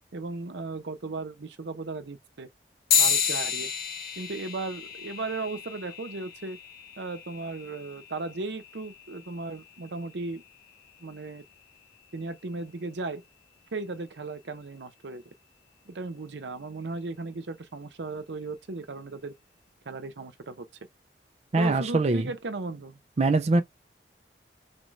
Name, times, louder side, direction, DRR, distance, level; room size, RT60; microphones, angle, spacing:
voice 1, 0.1-2.5 2.9-3.7 4.2-6.6 7.0-10.4 11.0-11.4 12.1-13.2 13.7-15.2 15.9-19.3 19.9-20.7 21.6-23.0 23.5-23.6, right 3 dB, 80° right, 0.7 m, -36 dB
sound 1, 2.9-12.7, left 7 dB, 60° left, 1.3 m, -32 dB
voice 2, 21.5-22.3 23.2-23.6, right 3 dB, 40° right, 0.4 m, -23 dB
4.1 x 3.2 x 2.5 m
head